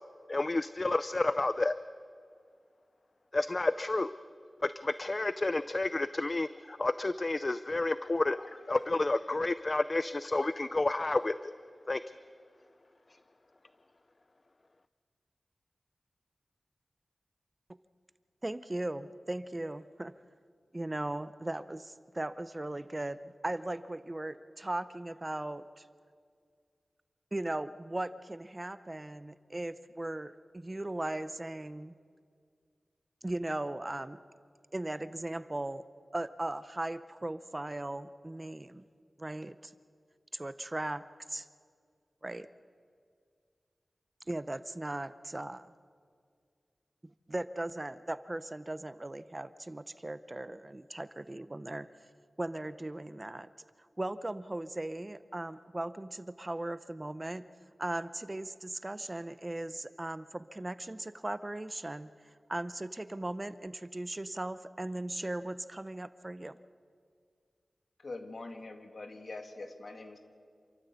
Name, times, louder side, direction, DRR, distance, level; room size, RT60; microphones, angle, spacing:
voice 1, 0.3-1.8 3.3-4.1 4.6-11.5 11.9-12.0, left 2 dB, 35° left, 13 dB, 0.5 m, -30 dB
voice 2, 18.4-20.1 20.7-25.9 27.3-31.9 33.2-34.2 34.7-35.8 36.1-38.9 39.2-39.7 40.3-41.5 42.2-42.5 44.3-45.7 47.0-51.9 52.4-53.5 54.0-57.4 57.8-66.6, right 1 dB, 25° right, 14 dB, 0.6 m, -38 dB
voice 3, 68.0-70.2, left 2 dB, 60° left, 6 dB, 2.2 m, -44 dB
28.0 x 13.5 x 8.3 m, 2.1 s
wide cardioid pair, 95°, 0 cm